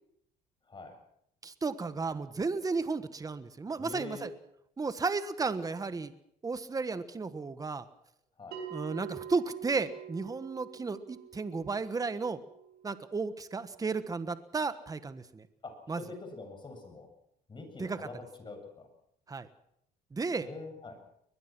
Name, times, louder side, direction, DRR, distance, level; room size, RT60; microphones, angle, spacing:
voice 1, 1.4-4.3 4.8-6.1 6.4-7.9 8.7-12.4 12.8-15.5 15.9-16.0 17.8-18.0 19.3-19.5 20.1-20.5, right 4 dB, 20° right, 12 dB, 1.3 m, -33 dB
voice 2, 3.8-4.3 8.4-8.6 15.6-17.1 17.5-18.9 20.4-21.0, left 3 dB, 30° left, 5 dB, 7.5 m, -44 dB
Bell, 8.5-13.6, right 9 dB, 80° right, 6.9 m, -46 dB
22.5 x 21.0 x 6.1 m, 0.73 s
cardioid pair, 110°, 17 cm